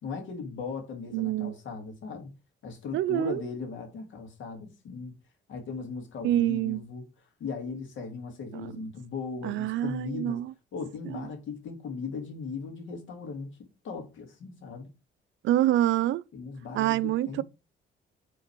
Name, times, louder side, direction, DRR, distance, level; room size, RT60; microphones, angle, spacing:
voice 1, 0.0-2.3 2.6-5.2 5.5-7.0 7.4-10.4 10.7-14.9 16.3-17.4, left 5 dB, 75° left, 2.3 m, -38 dB
voice 2, 1.1-1.5 2.9-3.4 6.2-6.8 9.4-10.5 11.1-11.3 15.4-16.2 16.7-17.4, right 13 dB, 75° right, 0.4 m, -26 dB
5.6 x 3.9 x 5.9 m
cardioid pair, 90°, 20 cm